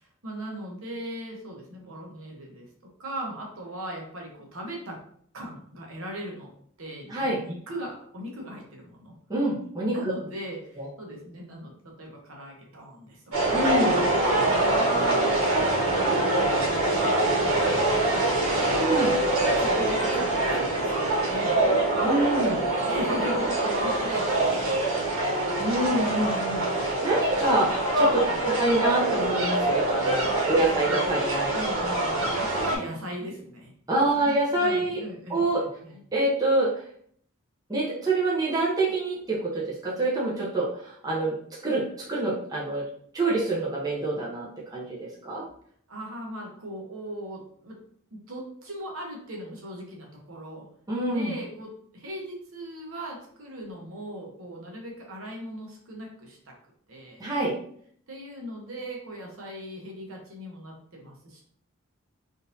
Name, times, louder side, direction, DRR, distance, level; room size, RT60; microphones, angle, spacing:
voice 1, 0.0-2.7 3.0-5.0 5.3-6.5 6.8-9.1 9.8-13.7 14.5-18.7 19.1-22.0 22.8-25.6 30.6-30.8 31.5-33.7 34.2-36.0 45.9-47.8 48.1-50.7 51.1-56.5 56.9-57.2 58.1-61.4, right 1 dB, 65° right, 0 dB, 0.9 m, -39 dB
voice 2, 9.3-9.9 10.8-10.9 13.5-14.0 18.8-19.1 22.0-22.7 25.6-31.6 31.8-32.0 33.9-35.0 35.3-35.6 36.1-36.8 37.7-41.3 41.6-42.9 43.1-45.4 50.9-51.3 57.2-57.5, right 2 dB, 15° right, -6 dB, 0.6 m, -26 dB
sound 1, 13.3-32.8, right 2 dB, 90° right, 1.3 m, -24 dB
3.7 x 2.5 x 2.6 m, 0.62 s
head